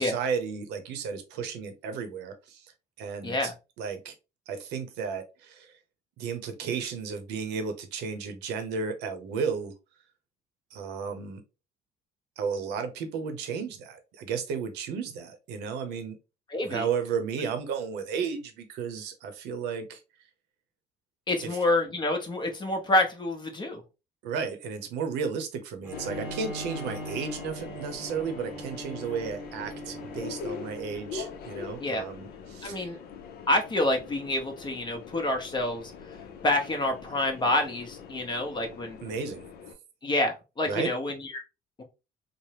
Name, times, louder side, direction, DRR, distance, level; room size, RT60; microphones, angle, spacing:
voice 1, 0.0-2.7 3.0-3.5 3.8-4.1 4.5-5.7 6.2-9.7 10.7-11.4 12.4-16.2 16.6-20.0 21.4-21.6 24.2-32.9 39.0-39.5 40.7-40.9, right 6 dB, 90° right, 8 dB, 0.7 m, -33 dB
voice 2, 3.2-3.5 16.5-16.9 21.3-23.8 31.8-32.0 32.6-33.0 33.5-36.2 36.4-39.0 40.0-41.4 41.8-41.9, left 2 dB, 25° left, 4 dB, 0.8 m, -28 dB
Bowed string instrument, 25.8-31.5, right 2 dB, 10° right, 0.9 m, -42 dB
Subway metro underground, 25.9-39.7, left 6 dB, 65° left, 0.6 m, -42 dB
3.3 x 2.0 x 2.8 m, 0.28 s
cardioid pair, 110°, 17 cm